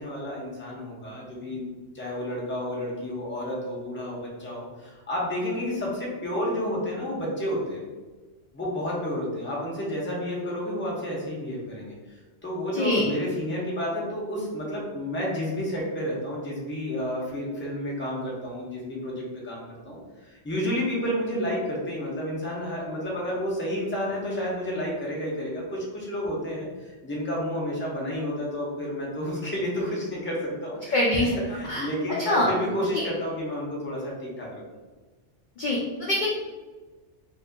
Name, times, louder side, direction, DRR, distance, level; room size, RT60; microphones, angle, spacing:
voice 1, 0.0-1.7 1.9-7.8 8.5-11.9 12.4-31.0 31.5-34.6, equal, 10° left, -4 dB, 0.6 m, -31 dB
voice 2, 12.7-13.1 30.9-31.3 31.6-32.5 32.9-33.0 35.6-36.3, left 1 dB, 60° left, -3 dB, 0.5 m, -25 dB
2.7 x 2.7 x 3.5 m, 1.3 s
omnidirectional pair, 1.2 m